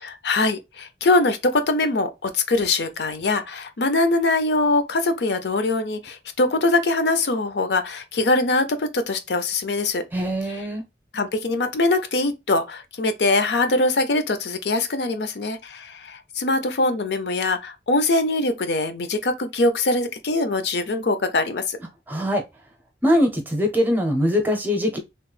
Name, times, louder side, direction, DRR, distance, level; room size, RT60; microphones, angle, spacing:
voice 1, 0.0-10.0 11.1-21.8, left 2 dB, 75° left, 0.6 m, -22 dB
voice 2, 10.1-10.8 22.1-22.4 23.0-25.0, equal, 10° right, 0.6 m, -22 dB
3.0 x 2.0 x 3.2 m
head